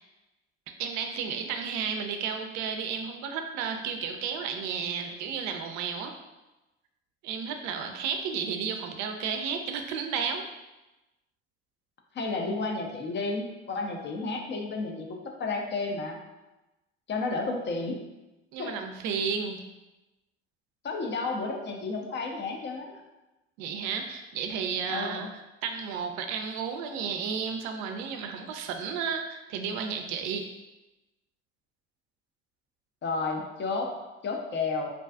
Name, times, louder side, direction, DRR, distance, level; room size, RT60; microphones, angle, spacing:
voice 1, 0.8-6.1 7.2-10.4 18.5-19.6 23.6-25.3 25.6-30.5, right 6 dB, 60° right, 5 dB, 0.4 m, -32 dB
voice 2, 12.1-16.2 17.1-18.0 18.6-18.8 20.8-23.0 24.9-25.3 33.0-34.9, left 3 dB, 35° left, 2 dB, 0.5 m, -32 dB
2.5 x 2.3 x 2.3 m, 1.0 s
hypercardioid pair, 55°, 33 cm